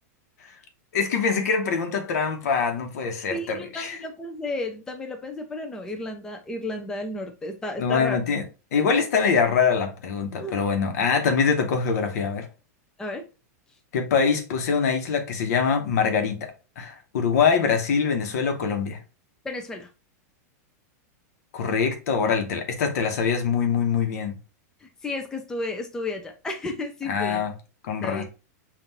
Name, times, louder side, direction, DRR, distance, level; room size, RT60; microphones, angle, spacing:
voice 1, 0.9-4.0 7.8-8.4 8.7-12.5 13.9-19.0 21.5-24.4 27.1-27.5 27.8-28.2, left 6 dB, 70° left, 1.0 m, -24 dB
voice 2, 3.3-8.2 10.4-10.6 13.0-13.2 19.4-19.9 24.8-27.4 28.0-28.2, left 2 dB, 5° left, 0.4 m, -33 dB
5.5 x 2.5 x 2.8 m
supercardioid pair, 150°, 9 cm